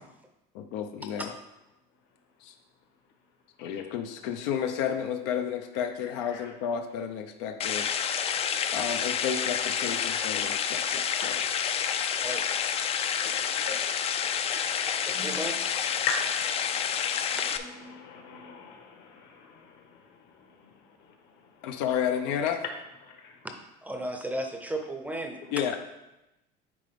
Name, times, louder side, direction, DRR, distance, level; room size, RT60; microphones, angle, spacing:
voice 1, 0.5-1.3 2.4-2.5 3.6-7.9 8.7-11.4 21.6-22.6 25.5-25.8, left 8 dB, 85° left, 5 dB, 0.7 m, -31 dB
sound 1, 7.6-17.6, left 8 dB, 30° left, 0.4 m, -29 dB
voice 2, 13.2-13.8 14.8-14.9 15.1-15.3 16.1-16.5 16.9-17.4 17.9-19.6 23.2-23.3, left 5 dB, 60° left, 3 dB, 1.3 m, -37 dB
voice 3, 15.2-15.5 23.4-23.5 23.8-25.4, right 1 dB, 5° right, 4 dB, 0.6 m, -34 dB
9.4 x 3.8 x 3.6 m, 0.93 s
cardioid pair, 140°, 20 cm